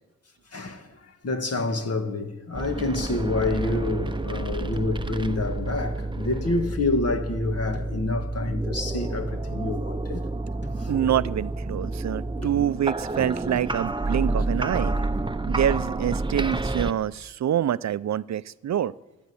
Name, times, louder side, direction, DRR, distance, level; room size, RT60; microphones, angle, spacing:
voice 1, 0.5-10.3 10.8-10.9 12.4-12.5, left 2 dB, 55° left, 2.0 m, -28 dB
sound 1, 2.5-16.9, right 2 dB, 15° right, 0.7 m, -29 dB
sound 2, 4.7-5.5 7.7-8.5 10.6-11.4 13.6-14.3 16.5-17.3, left 1 dB, 40° left, 2.3 m, -45 dB
voice 2, 10.9-14.9 15.5-18.9, right 10 dB, 65° right, 0.5 m, -26 dB
15.0 x 11.0 x 8.4 m
cardioid pair, 75°, 29 cm